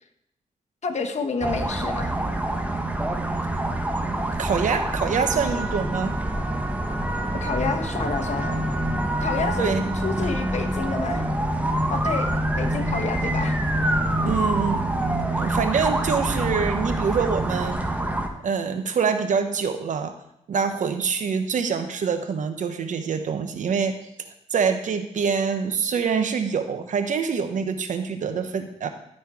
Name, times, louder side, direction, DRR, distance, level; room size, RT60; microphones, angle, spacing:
voice 1, 0.8-2.1 7.4-8.7 9.2-9.7 10.0-11.3 11.9-12.3 12.6-13.6 13.8-13.9, left 4 dB, 60° left, 5 dB, 1.1 m, -29 dB
sound 1, 1.4-18.3, right 1 dB, 10° right, 1.2 m, -26 dB
voice 2, 4.4-6.2 9.6-9.9 14.2-14.8 15.4-17.8 18.4-20.2 20.5-24.0 24.5-28.9, right 6 dB, 75° right, 7 dB, 1.0 m, -25 dB
13.5 x 4.5 x 4.8 m, 0.79 s
cardioid pair, 65°, 13 cm